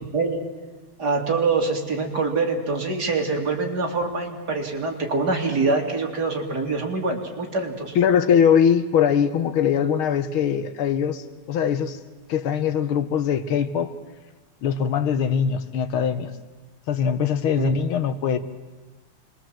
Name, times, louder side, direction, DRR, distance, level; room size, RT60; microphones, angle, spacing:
voice 1, 1.0-8.0 17.6-17.7, right 3 dB, 50° right, 1 dB, 3.3 m, -25 dB
voice 2, 8.0-12.0 12.3-13.9 14.6-16.3 16.9-18.4, left 8 dB, 80° left, 10 dB, 1.9 m, -21 dB
26.0 x 22.0 x 7.7 m, 1.3 s
omnidirectional pair, 2.3 m